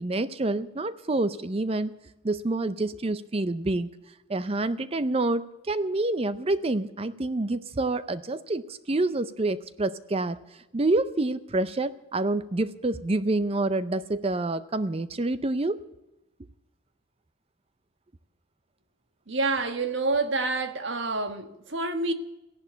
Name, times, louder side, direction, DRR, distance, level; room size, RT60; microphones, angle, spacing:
voice 1, 0.0-1.9 2.2-3.9 4.3-10.4 10.7-15.8, right 2 dB, 30° right, 0.5 m, -27 dB
voice 2, 19.3-22.1, right 3 dB, 60° right, 1.4 m, -28 dB
15.5 x 11.5 x 8.1 m
head